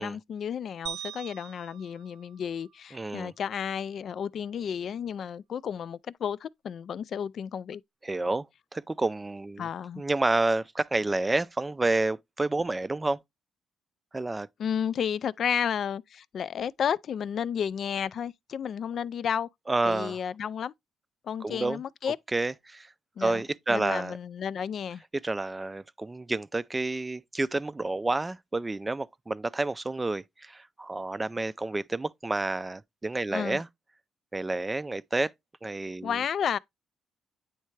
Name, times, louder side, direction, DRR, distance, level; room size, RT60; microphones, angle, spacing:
voice 1, 0.0-7.8 9.6-10.0 14.6-19.5 19.8-20.7 21.2-22.2 23.2-23.4 23.7-25.0 33.3-33.6 36.0-36.6, left 8 dB, 60° left, 0.3 m, -32 dB
sound 1, 0.9-3.2, right 11 dB, 80° right, 0.5 m, -43 dB
voice 2, 2.9-3.3 8.0-8.5 8.7-9.7 10.0-13.2 14.1-14.5 19.7-20.2 21.4-21.8 22.3-22.9 23.2-24.1 25.2-33.7 34.3-35.3 35.6-36.1, right 2 dB, 20° right, 0.4 m, -29 dB
9.2 x 3.3 x 3.2 m
cardioid pair, 90°, 0 cm